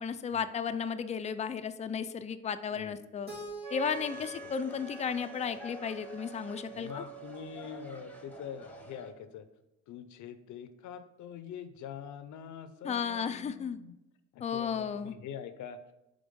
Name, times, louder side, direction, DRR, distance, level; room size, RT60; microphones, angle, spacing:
voice 1, 0.0-3.3 3.7-7.0 12.8-13.8 14.4-15.1, left 7 dB, 25° left, 11 dB, 0.3 m, -34 dB
Keyboard (musical), 3.3-6.2, right 2 dB, 35° right, 1.9 m, -47 dB
Wind instrument woodwind instrument, 3.6-9.3, right 5 dB, 70° right, 1.0 m, -47 dB
sound 1, 3.8-9.1, left 2 dB, 5° left, 0.8 m, -51 dB
voice 2, 6.7-9.5 9.9-13.9 14.3-15.8, left 8 dB, 75° left, 11 dB, 0.6 m, -44 dB
5.0 x 3.5 x 5.3 m, 0.91 s
cardioid pair, 90°, 30 cm